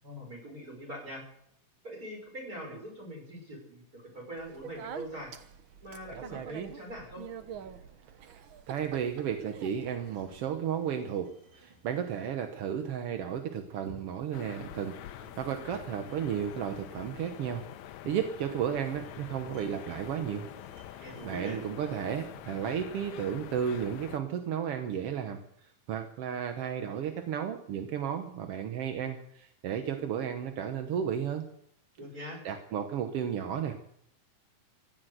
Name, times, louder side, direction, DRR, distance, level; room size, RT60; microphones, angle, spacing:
voice 1, 0.0-1.2 1.8-5.3 5.8-7.2 21.0-21.6 32.0-32.4, equal, 25° right, 0 dB, 6.6 m, -42 dB
Speech, 4.4-10.4, right 8 dB, 90° right, 1.1 m, -45 dB
voice 2, 8.7-11.3 11.5-17.6 18.0-20.5 20.9-25.4 25.9-31.4 32.4-33.7, right 8 dB, 65° right, 6 dB, 1.6 m, -33 dB
sound 1, 8.8-22.2, right 1 dB, 40° right, 4.9 m, -57 dB
sound 2, 14.3-24.2, left 12 dB, 75° left, 1.9 m, -46 dB
15.5 x 10.5 x 8.0 m, 0.73 s
omnidirectional pair, 3.7 m